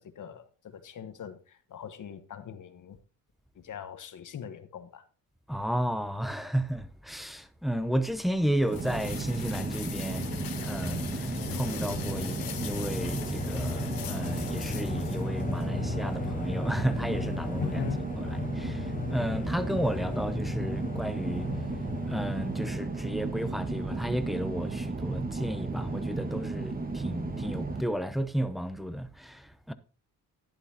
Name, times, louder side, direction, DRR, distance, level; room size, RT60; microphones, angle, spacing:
voice 1, 0.0-3.0 3.5-5.0 17.6-18.0, left 8 dB, 60° left, 1.3 m, -40 dB
voice 2, 5.5-17.8 18.2-21.5 22.0-29.7, equal, ahead, 0.9 m, -33 dB
sound 1, 7.8-15.7, left 10 dB, 80° left, 1.6 m, -43 dB
sound 2, 8.7-27.8, right 3 dB, 25° right, 1.4 m, -34 dB
sound 3, 10.0-23.1, left 4 dB, 25° left, 1.1 m, -37 dB
12.0 x 10.5 x 2.9 m
cardioid pair, 95°, 35 cm